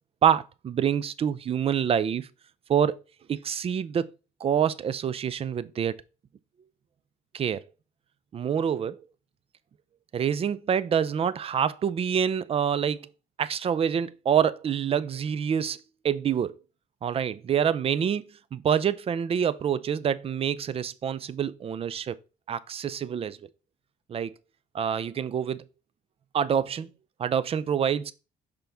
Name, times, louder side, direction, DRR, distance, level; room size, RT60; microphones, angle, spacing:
voice 1, 0.2-2.3 2.7-3.0 3.3-4.1 4.4-5.9 7.3-7.6 8.3-9.0 10.1-13.1 13.4-16.5 17.0-18.2 18.5-22.2 22.5-23.4 24.1-24.3 24.7-25.6 26.3-26.9 27.2-28.1, right 8 dB, 35° right, 0.5 m, -26 dB
5.9 x 5.1 x 3.5 m
cardioid pair, 110°, 17 cm